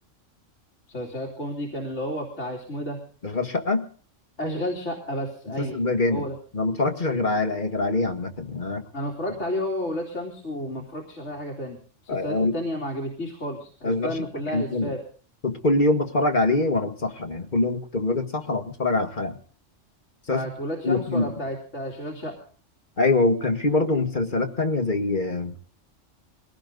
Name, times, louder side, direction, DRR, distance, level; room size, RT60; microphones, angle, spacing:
voice 1, 0.9-3.0 4.4-5.8 6.1-6.4 8.9-11.8 12.0-15.0 20.3-22.4, equal, 65° left, 0 dB, 3.4 m, -31 dB
voice 2, 3.2-3.9 5.6-6.3 6.5-8.8 12.1-12.6 13.8-14.1 14.5-14.9 15.4-19.4 20.3-20.4 20.8-21.3 23.0-25.5, left 2 dB, 40° left, 6 dB, 1.8 m, -24 dB
21.5 x 17.5 x 3.8 m, 0.41 s
omnidirectional pair, 1.3 m